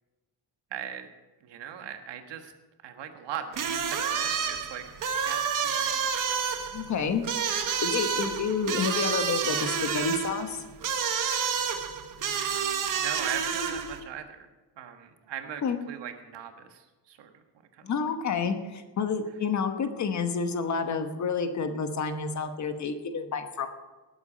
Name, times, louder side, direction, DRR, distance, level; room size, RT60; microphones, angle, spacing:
voice 1, 0.7-1.1 1.4-2.5 2.8-6.7 12.2-14.5 14.8-17.4 17.7-17.9, right 9 dB, 85° right, 6 dB, 1.6 m, -40 dB
sound 1, 3.5-14.0, right 7 dB, 50° right, 1.3 m, -29 dB
voice 2, 6.7-7.2 7.8-10.6 15.6-15.8 17.8-23.7, left 5 dB, 45° left, 8 dB, 1.1 m, -29 dB
19.0 x 8.3 x 5.1 m, 1.2 s
cardioid pair, 180°, 41 cm